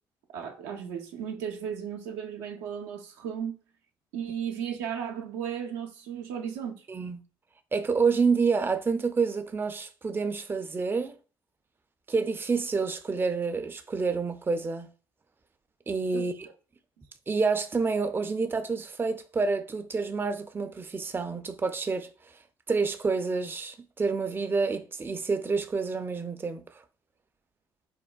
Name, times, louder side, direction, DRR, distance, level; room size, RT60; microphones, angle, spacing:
voice 1, 0.3-3.6 4.1-6.9 16.1-16.3, right 8 dB, 90° right, 0.5 m, -35 dB
voice 2, 6.9-7.2 7.7-11.1 12.1-14.9 15.9-16.3 17.3-22.1 22.7-26.6, right 4 dB, 20° right, 0.4 m, -28 dB
3.3 x 2.1 x 2.2 m
hypercardioid pair, 55°, 10 cm